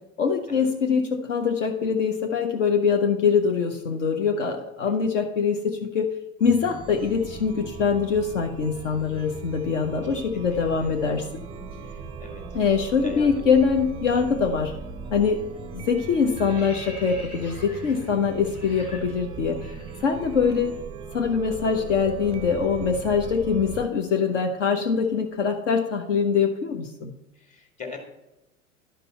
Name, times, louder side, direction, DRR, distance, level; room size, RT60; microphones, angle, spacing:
voice 1, 0.2-6.1 6.4-11.3 12.5-14.7 15.1-15.4 15.7-19.6 20.0-20.8 21.1-27.1, left 6 dB, 55° left, 3 dB, 1.0 m, -23 dB
Chime, 6.4-23.8, right 5 dB, 15° right, 0.5 m, -39 dB
voice 2, 10.3-10.9 11.8-12.4 13.0-13.4 15.5-15.6 20.4-20.5 27.4-28.0, left 4 dB, 15° left, 3 dB, 1.8 m, -41 dB
sound 1, 15.0-15.3 15.6-20.6 20.9-21.0 21.4-25.4, left 1 dB, 85° left, 2.0 m, -47 dB
11.5 x 5.3 x 4.2 m, 0.95 s
figure-of-eight pair, 85°, 43 cm